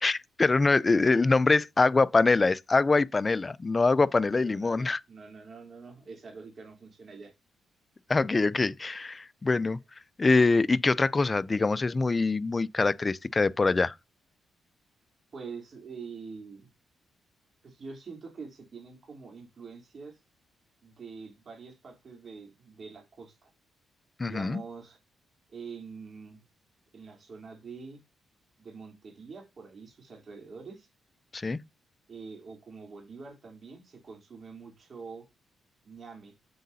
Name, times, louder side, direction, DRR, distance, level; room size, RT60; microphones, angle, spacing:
voice 1, 0.0-5.0 8.1-9.8 10.2-13.9 24.2-24.6 31.3-31.6, left 3 dB, 20° left, 0.4 m, -24 dB
voice 2, 4.3-7.3 15.3-16.7 17.6-20.2 20.8-23.5 24.2-25.0 25.5-26.4 26.9-28.0 28.6-30.9 32.1-35.3 35.8-36.3, right 5 dB, 40° right, 3.4 m, -45 dB
8.4 x 7.7 x 2.8 m
cardioid pair, 140°, 0 cm